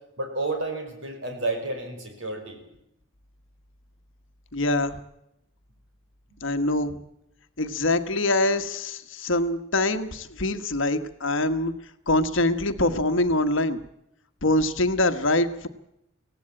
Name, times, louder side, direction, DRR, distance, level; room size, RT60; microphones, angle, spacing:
voice 1, 0.2-2.6, right 2 dB, 60° right, 4 dB, 5.8 m, -30 dB
voice 2, 4.5-5.0 6.4-7.0 7.6-11.7 12.1-13.8 14.4-15.7, left 2 dB, 60° left, 9 dB, 1.4 m, -24 dB
24.0 x 17.0 x 8.9 m, 0.83 s
head